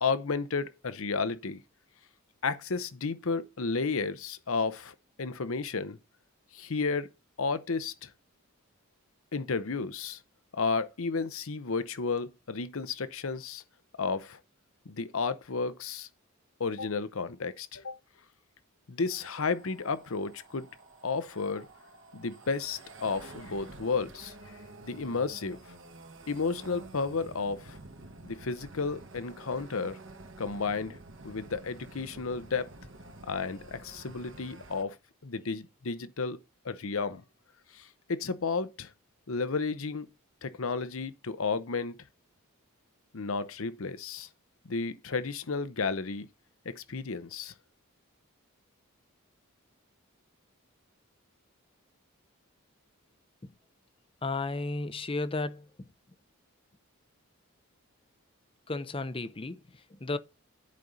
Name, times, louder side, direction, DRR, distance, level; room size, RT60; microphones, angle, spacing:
voice 1, 0.0-1.6 2.4-6.0 6.5-7.1 7.4-8.1 9.3-10.2 10.5-13.6 14.0-14.4 14.9-16.1 16.6-18.0 18.9-20.7 21.0-21.7 22.1-25.6 26.3-27.8 28.2-30.0 30.4-31.0 31.2-32.7 33.2-35.0 35.2-36.4 36.6-37.2 37.7-38.9 39.3-40.1 40.4-41.9 43.1-44.3 44.6-46.3 46.6-47.5, left 4 dB, 70° left, 0.8 m, -32 dB
sound 1, 19.0-34.8, right 2 dB, 60° right, 1.4 m, -50 dB
voice 2, 54.2-55.9 58.7-60.2, left 3 dB, 25° left, 0.5 m, -34 dB
10.5 x 5.4 x 4.0 m
head